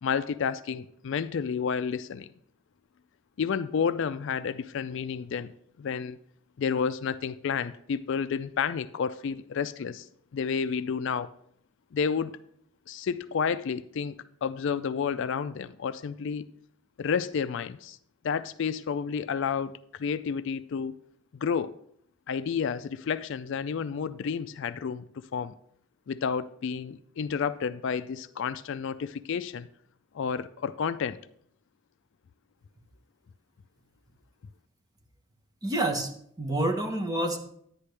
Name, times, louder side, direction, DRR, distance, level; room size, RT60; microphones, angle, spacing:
voice 1, 0.0-2.3 3.4-5.5 5.8-6.2 6.6-10.1 10.3-11.3 11.9-12.3 12.9-14.2 14.4-16.5 17.0-18.0 18.2-20.9 21.3-21.7 22.3-25.5 26.1-29.7 30.1-31.2, left 6 dB, 60° left, 0.4 m, -30 dB
voice 2, 35.6-36.1 36.4-37.4, right 1 dB, 20° right, 1.0 m, -27 dB
10.5 x 9.9 x 3.3 m
head